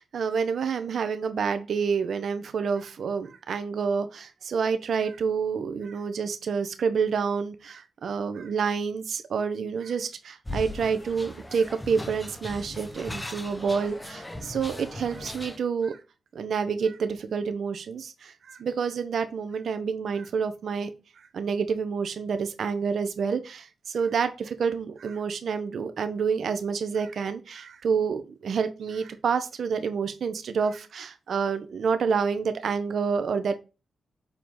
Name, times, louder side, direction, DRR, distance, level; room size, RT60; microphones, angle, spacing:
voice 1, 0.0-16.0 16.3-20.9 21.3-33.5, right 6 dB, 70° right, 10 dB, 1.1 m, -28 dB
sound 1, 10.5-15.6, left 1 dB, 15° left, 1.2 m, -38 dB
7.0 x 4.4 x 3.9 m, 0.29 s
cardioid pair, 65°, 0 cm